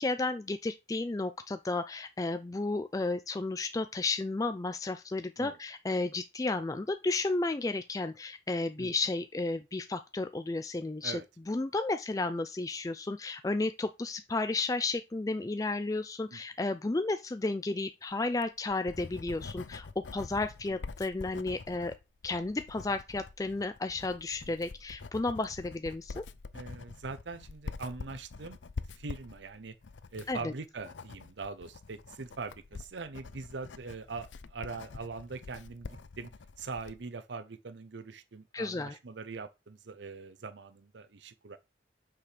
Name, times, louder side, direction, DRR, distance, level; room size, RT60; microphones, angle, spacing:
voice 1, 0.0-11.2 11.5-21.9 22.2-26.2 30.3-30.5 38.5-39.0, left 3 dB, 20° left, 0.3 m, -33 dB
Writing, 18.2-37.0, left 4 dB, 90° left, 0.6 m, -46 dB
voice 2, 26.5-28.6 28.9-29.7 30.1-36.3 36.6-41.6, right 4 dB, 80° right, 0.7 m, -42 dB
6.0 x 5.9 x 5.0 m
head